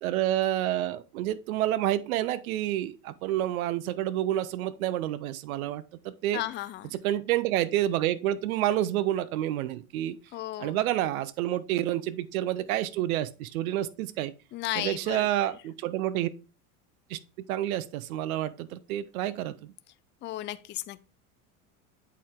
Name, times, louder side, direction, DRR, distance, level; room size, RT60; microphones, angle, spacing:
voice 1, 0.0-6.4 6.9-10.2 10.6-14.3 14.8-16.3 17.1-17.2 17.5-19.7, right 13 dB, 85° right, 0.8 m, -29 dB
voice 2, 6.3-6.9 10.3-10.8 14.5-15.5 20.2-21.0, left 15 dB, 25° left, 0.5 m, -35 dB
8.5 x 4.5 x 3.6 m
supercardioid pair, 120°, 41 cm